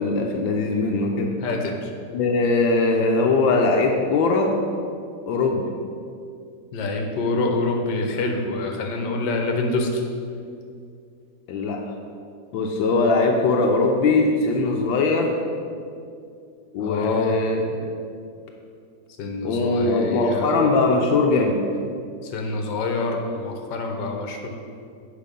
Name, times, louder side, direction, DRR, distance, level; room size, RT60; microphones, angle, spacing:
voice 1, 0.0-1.3 2.1-4.5 5.3-5.7 11.5-11.8 12.5-15.3 16.7-17.9 19.4-21.6, left 3 dB, 85° left, 1 dB, 1.5 m, -21 dB
voice 2, 1.4-1.9 6.7-10.0 16.8-17.4 19.2-20.5 22.3-24.5, left 2 dB, 65° left, 2 dB, 1.5 m, -26 dB
8.5 x 5.5 x 5.2 m, 2.4 s
omnidirectional pair, 2.1 m